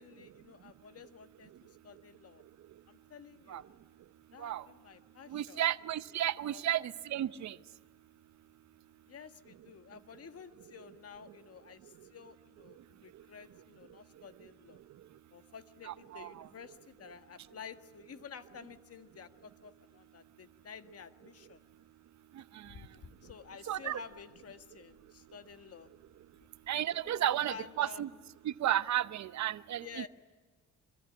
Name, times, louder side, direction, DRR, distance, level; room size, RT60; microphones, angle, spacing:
voice 1, 0.0-2.4 2.9-3.6 4.3-5.6 6.5-6.6 9.1-14.8 15.3-21.6 22.7-25.9 27.0-28.1 29.8-30.1, left 6 dB, 50° left, 10 dB, 1.7 m, -51 dB
voice 2, 5.3-7.6 15.8-16.5 22.5-22.7 23.7-24.0 26.7-28.1 28.4-30.1, right 12 dB, 65° right, 15 dB, 0.8 m, -33 dB
26.0 x 23.0 x 9.7 m, 1.3 s
cardioid pair, 90°, 30 cm